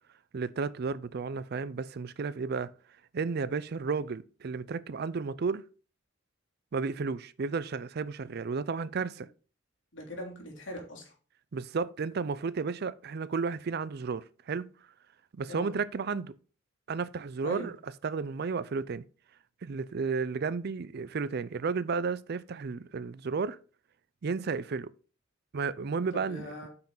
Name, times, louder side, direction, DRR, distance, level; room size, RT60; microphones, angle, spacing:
voice 1, 0.3-2.7 3.1-5.6 6.7-9.3 11.5-14.7 15.3-16.3 16.9-17.8 18.0-19.0 19.6-23.6 24.2-24.9 25.5-26.5, right 5 dB, 55° right, 0.4 m, -33 dB
voice 2, 9.9-11.1 15.5-15.7 17.4-17.7 26.1-26.7, left 1 dB, 65° left, 3.2 m, -40 dB
8.7 x 5.9 x 3.9 m
head